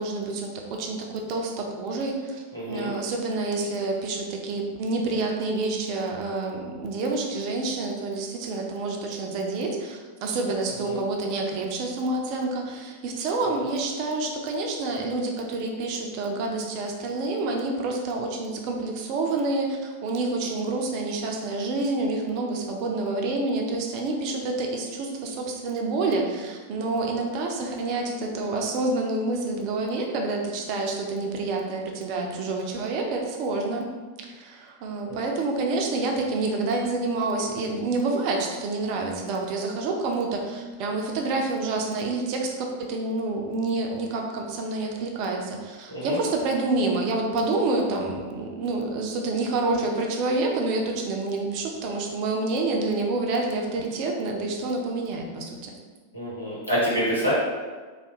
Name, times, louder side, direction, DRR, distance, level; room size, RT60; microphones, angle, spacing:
voice 1, 0.0-33.8 34.2-55.8, right 3 dB, 45° right, 1 dB, 0.5 m, -28 dB
voice 2, 2.5-2.9 10.8-11.0 45.9-46.2 56.1-57.3, equal, 85° left, -8 dB, 1.1 m, -26 dB
3.3 x 2.2 x 3.0 m, 1.4 s
figure-of-eight pair, 90°, 0 cm